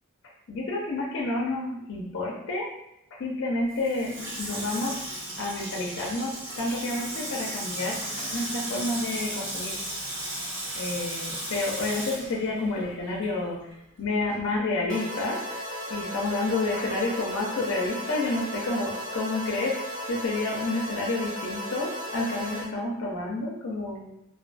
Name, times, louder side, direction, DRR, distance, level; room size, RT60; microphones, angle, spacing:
voice 1, 0.5-2.7 3.1-5.0 5.4-9.8 10.7-13.6 14.0-19.8 20.1-24.1, left 2 dB, 60° left, -1 dB, 0.4 m, -29 dB
Water tap faucet / Sink (filling or washing), 3.7-13.4 13.7-13.8, right 1 dB, 60° right, 1.0 m, -35 dB
sound 1, 14.9-22.7, equal, 45° right, 0.5 m, -35 dB
2.5 x 2.2 x 2.4 m, 0.82 s
head